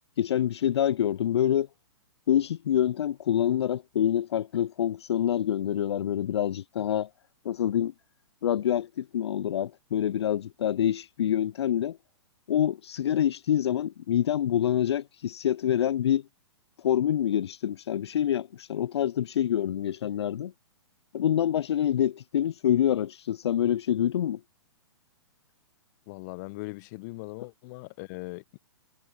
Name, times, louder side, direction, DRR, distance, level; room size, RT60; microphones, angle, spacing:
voice 1, 0.2-1.7 2.3-7.1 7.4-7.9 8.4-12.0 12.5-16.2 16.8-20.5 21.1-24.4, left 10 dB, 65° left, 0.4 m, -26 dB
voice 2, 26.1-28.6, left 25 dB, 40° left, 0.9 m, -40 dB
figure-of-eight pair, 120°, 15 cm